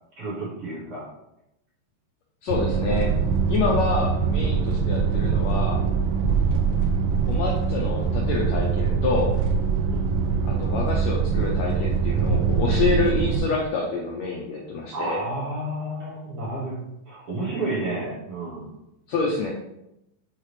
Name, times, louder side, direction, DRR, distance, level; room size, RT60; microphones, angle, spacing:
voice 1, 0.2-1.1 9.9-10.1 14.9-18.8, right 2 dB, 50° right, -7 dB, 2.0 m, -31 dB
voice 2, 2.4-3.1 3.5-5.8 7.3-9.3 10.4-15.2 19.1-19.5, left 4 dB, 75° left, -2 dB, 1.6 m, -27 dB
sound 1, 2.5-13.4, right 5 dB, 80° right, 2.2 m, -23 dB
8.1 x 3.7 x 3.2 m, 0.86 s
omnidirectional pair, 3.9 m